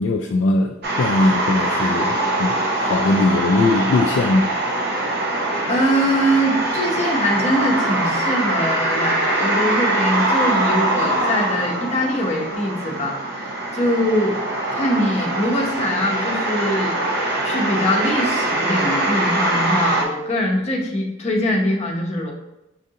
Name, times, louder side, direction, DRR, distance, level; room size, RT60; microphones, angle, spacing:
voice 1, 0.0-4.5, left 2 dB, 60° left, 2 dB, 0.3 m, -20 dB
sound 1, 0.8-20.0, right 1 dB, 55° right, 0.7 m, -23 dB
voice 2, 5.7-14.4 14.7-16.9 17.4-22.3, equal, 35° left, -1 dB, 0.8 m, -22 dB
6.3 x 2.5 x 2.7 m, 0.92 s
head